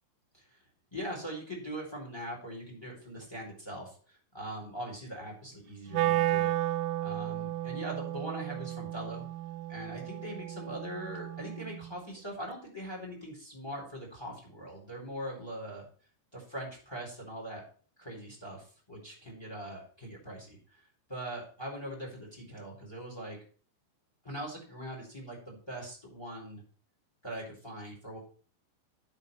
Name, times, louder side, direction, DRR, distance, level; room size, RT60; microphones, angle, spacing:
voice 1, 0.9-9.2 9.7-15.8 16.3-17.6 18.0-20.8 21.1-23.4 24.2-26.6 27.2-28.2, right 1 dB, 5° left, -1 dB, 3.2 m, -41 dB
Wind instrument woodwind instrument, 5.9-12.0, right 15 dB, 90° right, 3.3 m, -33 dB
9.7 x 6.6 x 5.4 m, 0.42 s
omnidirectional pair, 5.8 m